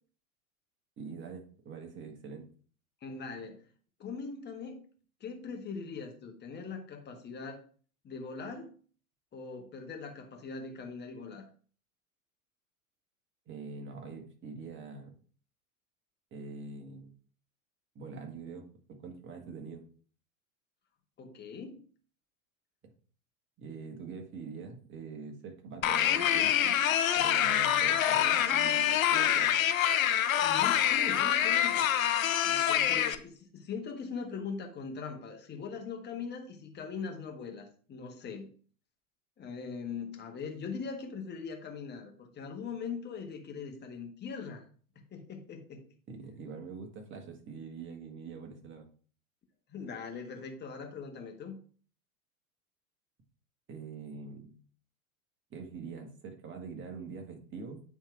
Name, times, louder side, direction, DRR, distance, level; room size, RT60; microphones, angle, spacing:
voice 1, 1.0-2.5 13.5-15.1 16.3-17.1 18.0-18.7 19.0-19.8 22.8-22.9 23.6-26.8 27.2-29.6 46.1-48.9 53.7-54.6 55.5-57.8, right 5 dB, 30° right, 4 dB, 1.8 m, -44 dB
voice 2, 3.0-3.6 4.0-4.8 5.2-7.6 8.0-8.7 9.3-11.4 21.2-21.8 30.4-31.9 32.4-38.5 39.4-44.6 44.9-45.9 49.7-51.6, left 5 dB, 25° left, 3 dB, 1.6 m, -41 dB
sound 1, 25.8-33.1, left 10 dB, 70° left, 0.8 m, -26 dB
9.1 x 3.6 x 4.7 m, 0.42 s
figure-of-eight pair, 85°, 42 cm